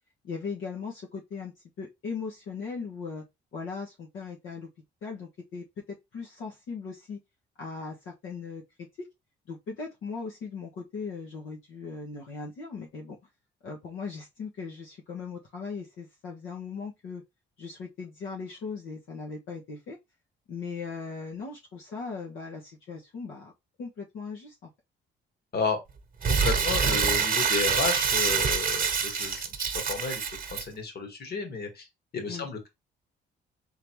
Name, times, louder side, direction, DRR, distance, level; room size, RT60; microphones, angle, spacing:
voice 1, 0.2-3.2 3.5-4.7 5.0-7.2 7.6-8.6 9.0-9.1 9.5-13.2 13.6-17.2 17.6-20.0 20.5-23.5 23.8-24.7 32.3-32.5, left 5 dB, 80° left, 1.3 m, -38 dB
Crumpling crinkling, 26.2-30.6, right 6 dB, 45° right, 1.1 m, -26 dB
voice 2, 26.3-29.5 29.7-30.2 30.5-31.9 32.1-32.7, left 4 dB, 55° left, 1.8 m, -32 dB
3.9 x 3.5 x 3.1 m
cardioid pair, 90°, 20 cm